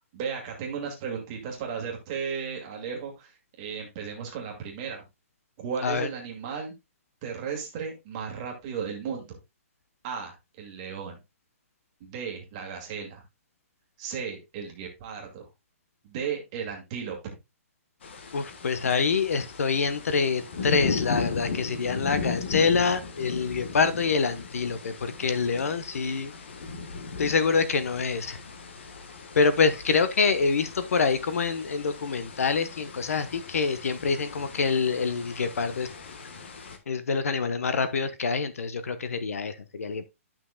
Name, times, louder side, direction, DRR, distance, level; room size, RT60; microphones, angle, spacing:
voice 1, 0.1-5.1 5.6-6.7 7.2-9.4 10.0-11.2 12.0-13.2 14.0-15.5 16.0-17.4, right 6 dB, 20° right, 1.9 m, -35 dB
sound 1, 18.0-36.8, left 5 dB, 50° left, 1.3 m, -37 dB
voice 2, 18.3-26.3 27.2-28.4 29.3-35.9 36.9-40.1, left 5 dB, 75° left, 1.1 m, -26 dB
12.5 x 6.0 x 2.3 m
hypercardioid pair, 180°, 8 cm